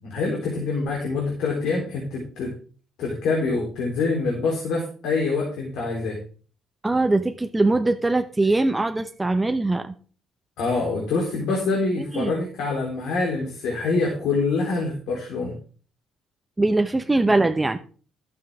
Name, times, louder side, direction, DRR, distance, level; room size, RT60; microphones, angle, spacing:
voice 1, 0.0-2.5 3.0-6.2 10.6-15.5 17.3-17.4, left 3 dB, 80° left, -2 dB, 3.8 m, -25 dB
voice 2, 6.8-9.9 12.0-12.3 16.6-17.8, right 2 dB, 15° right, 7 dB, 0.9 m, -22 dB
12.0 x 9.1 x 3.7 m, 0.40 s
supercardioid pair, 80°, 0 cm